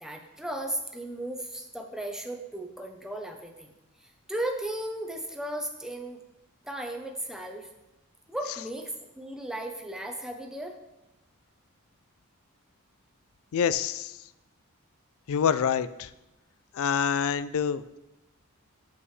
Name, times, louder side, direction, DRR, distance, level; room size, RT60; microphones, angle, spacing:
voice 1, 0.0-3.7 4.3-6.2 6.6-7.7 8.3-10.8, right 1 dB, 5° right, 3 dB, 0.8 m, -35 dB
voice 2, 13.5-14.1 15.3-16.1 16.7-18.0, left 7 dB, 65° left, 15 dB, 0.4 m, -26 dB
8.4 x 7.6 x 3.2 m, 0.97 s
head